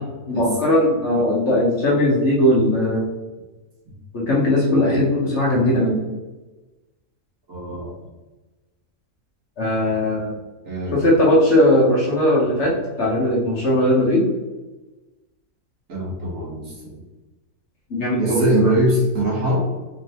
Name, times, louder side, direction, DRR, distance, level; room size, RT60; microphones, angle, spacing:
voice 1, 0.3-3.0 4.1-6.0 9.6-10.3 10.9-14.3 17.9-18.7, left 1 dB, 60° left, -5 dB, 1.2 m, -19 dB
voice 2, 7.5-8.0 10.7-11.1 15.9-16.9 18.2-19.6, right 1 dB, 75° right, -5 dB, 1.7 m, -22 dB
3.7 x 3.4 x 2.8 m, 1.1 s
omnidirectional pair, 1.4 m